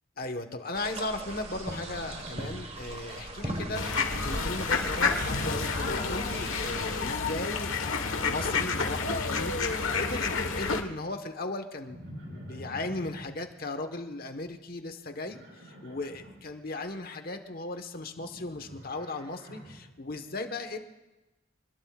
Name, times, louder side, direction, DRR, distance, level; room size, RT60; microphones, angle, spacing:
voice 1, 0.2-12.0 12.3-20.8, left 2 dB, 45° left, 7 dB, 1.3 m, -37 dB
sound 1, 0.7-7.1, right 1 dB, 30° right, 1.4 m, -38 dB
Livestock farm animals working animals, 1.9-3.1 3.4-3.9 5.2-6.2 7.8-9.6 11.9-13.3 15.2-16.4 18.1-19.9, equal, 60° right, 5.7 m, -48 dB
sound 2, 3.7-10.8, left 4 dB, 90° left, 1.3 m, -29 dB
26.0 x 21.0 x 2.4 m, 1.1 s
head